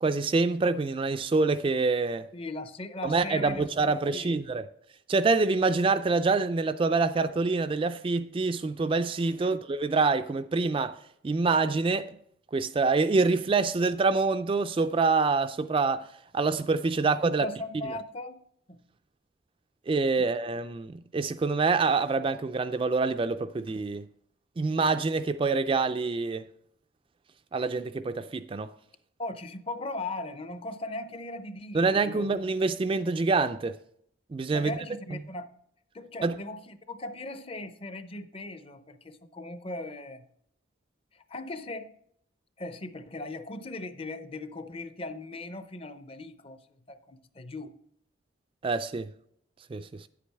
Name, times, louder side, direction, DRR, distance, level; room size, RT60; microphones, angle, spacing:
voice 1, 0.0-2.3 3.0-4.7 5.1-11.0 11.2-12.1 12.5-16.1 16.3-17.5 19.9-24.1 24.6-26.4 27.5-28.7 31.7-33.8 34.3-34.7 36.2-36.4 48.6-49.1 49.7-50.1, right 4 dB, 30° right, 0.3 m, -26 dB
voice 2, 2.3-3.7 4.1-4.4 9.3-9.6 17.0-17.1 17.4-18.8 20.2-20.3 29.2-32.4 34.5-35.5 35.9-40.2 41.3-41.9 42.6-46.6 46.9-47.7, left 2 dB, 30° left, 0.6 m, -38 dB
10.0 x 8.4 x 3.4 m
head